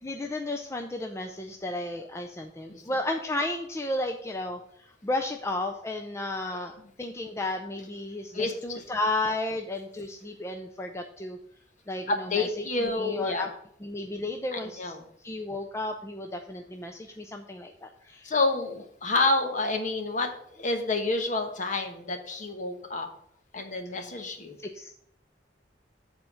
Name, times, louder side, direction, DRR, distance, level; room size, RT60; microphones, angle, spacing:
voice 1, 0.0-4.6 5.0-11.4 11.9-13.5 13.8-14.9 15.2-18.3 24.7-24.9, left 2 dB, 15° left, 4 dB, 0.5 m, -33 dB
voice 2, 8.3-8.8 12.1-13.4 14.5-15.0 18.2-23.1 23.5-24.6, left 3 dB, 45° left, 5 dB, 1.1 m, -29 dB
7.6 x 4.4 x 7.0 m, 0.69 s
head